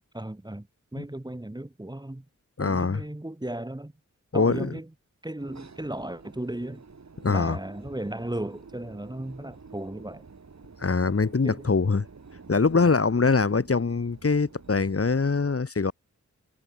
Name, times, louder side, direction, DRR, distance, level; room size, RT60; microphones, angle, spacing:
voice 1, 0.0-2.3 2.6-3.9 4.3-4.9 5.2-6.8 7.3-10.2 11.4-11.7 12.7-13.0, right 1 dB, 15° right, 2.4 m, -36 dB
voice 2, 2.6-3.0 4.3-4.7 7.2-7.6 10.8-12.0 12.5-15.9, left 4 dB, 45° left, 2.3 m, -23 dB
sound 1, 5.4-15.2, right 4 dB, 60° right, 5.5 m, -49 dB
wide cardioid pair, 75°, 32 cm